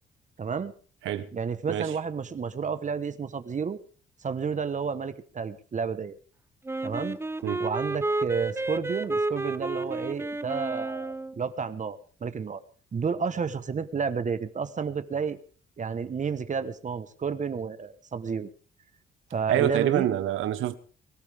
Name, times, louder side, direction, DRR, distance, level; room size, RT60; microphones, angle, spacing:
voice 1, 0.4-0.7 1.3-3.8 4.2-6.2 6.8-7.2 7.6-12.6 12.9-15.4 15.8-18.5 19.3-20.1, right 6 dB, 40° right, 1.2 m, -31 dB
Wind instrument woodwind instrument, 6.7-11.4, right 2 dB, 10° right, 0.9 m, -31 dB
voice 2, 19.5-20.8, right 12 dB, 85° right, 1.4 m, -26 dB
23.5 x 13.5 x 3.6 m
cardioid pair, 90°, 20 cm